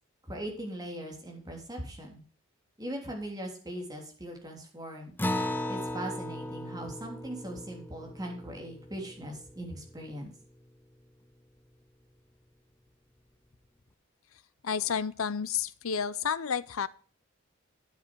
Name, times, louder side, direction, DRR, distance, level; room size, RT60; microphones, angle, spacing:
voice 1, 0.2-2.2 2.8-5.1 5.7-10.3, right 1 dB, 20° right, 1 dB, 3.2 m, -40 dB
Acoustic guitar, 5.2-10.1, left 1 dB, 10° left, 0.6 m, -36 dB
voice 2, 14.6-16.9, left 7 dB, 90° left, 17 dB, 0.6 m, -31 dB
11.5 x 7.5 x 4.6 m, 0.41 s
head